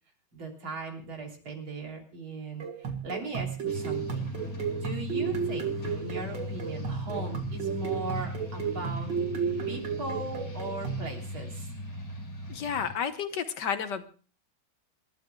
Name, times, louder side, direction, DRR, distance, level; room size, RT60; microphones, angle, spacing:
voice 1, 0.3-4.3 4.7-9.1 9.7-11.7, right 3 dB, 90° right, 1 dB, 4.1 m, -38 dB
sound 1, 2.6-11.1, right 7 dB, 65° right, 2.6 m, -33 dB
sound 2, 3.7-12.9, left 2 dB, 80° left, 6.1 m, -38 dB
voice 2, 12.5-14.1, left 7 dB, 60° left, 9 dB, 1.6 m, -31 dB
27.5 x 13.0 x 2.3 m, 0.38 s
omnidirectional pair, 2.2 m